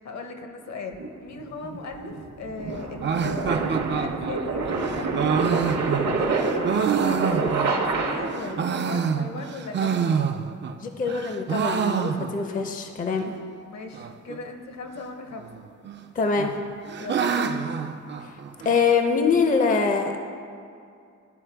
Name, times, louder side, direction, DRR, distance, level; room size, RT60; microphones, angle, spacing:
voice 1, 0.0-5.5 6.0-10.4 13.7-15.5 17.0-17.6, left 3 dB, 60° left, 5 dB, 0.8 m, -37 dB
sound 1, 1.0-8.6, right 3 dB, 65° right, 0.8 m, -27 dB
sound 2, 3.0-8.0 8.4-10.8 11.1-12.6 12.9-13.0 13.2-13.3 13.9-14.4 15.4-16.0 16.4-18.8, right 7 dB, 40° right, 0.4 m, -27 dB
voice 2, 10.8-13.3 16.1-16.5 18.2-18.4 18.6-20.2, left 5 dB, 25° left, 5 dB, 0.5 m, -24 dB
12.0 x 4.3 x 3.4 m, 2.4 s
cardioid pair, 100°, 31 cm